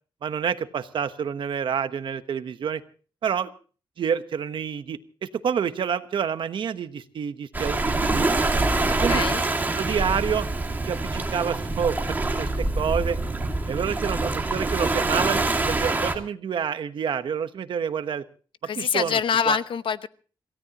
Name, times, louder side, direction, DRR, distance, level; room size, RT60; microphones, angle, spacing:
voice 1, 0.2-2.8 3.2-3.5 4.0-8.3 9.0-9.2 9.8-10.5 10.8-13.2 13.7-18.2 18.8-19.2 19.4-19.6, right 7 dB, 70° right, 10 dB, 1.2 m, -28 dB
Waves surf, 7.5-16.1, right 2 dB, 20° right, 2.3 m, -25 dB
voice 2, 8.8-9.4 18.6-20.1, left 7 dB, 75° left, 14 dB, 0.8 m, -25 dB
28.0 x 17.0 x 3.0 m, 0.39 s
wide cardioid pair, 150°, 9 cm